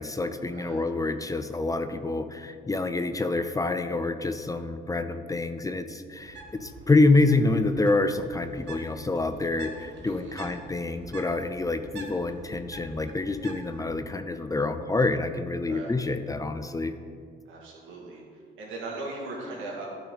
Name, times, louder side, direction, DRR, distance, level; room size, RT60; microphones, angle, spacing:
voice 1, 0.0-16.9, left 2 dB, 15° left, 9 dB, 0.5 m, -27 dB
voice 2, 0.5-0.8 10.1-10.5 15.7-15.9 17.5-18.2 18.6-19.9, right 2 dB, 90° right, -3 dB, 2.3 m, -38 dB
Bird, 6.2-14.0, right 3 dB, 65° right, 1.4 m, -46 dB
12.0 x 5.9 x 4.1 m, 2.2 s
cardioid pair, 90°, 20 cm